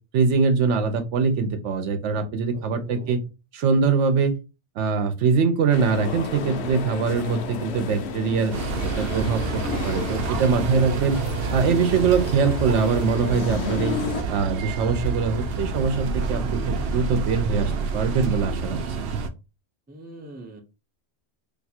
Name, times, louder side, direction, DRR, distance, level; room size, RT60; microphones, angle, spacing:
voice 1, 0.1-3.2 3.5-4.4 4.8-8.5 8.8-11.2 11.5-14.0 14.3-19.1, right 5 dB, 85° right, 8 dB, 1.0 m, -23 dB
voice 2, 2.5-3.3 19.9-20.6, right 1 dB, 15° right, 3 dB, 0.4 m, -43 dB
sound 1, 5.7-14.2, left 4 dB, 70° left, 0.8 m, -32 dB
sound 2, 8.5-19.3, right 4 dB, 65° right, 0.7 m, -28 dB
2.6 x 2.3 x 4.1 m, 0.29 s
omnidirectional pair, 1.2 m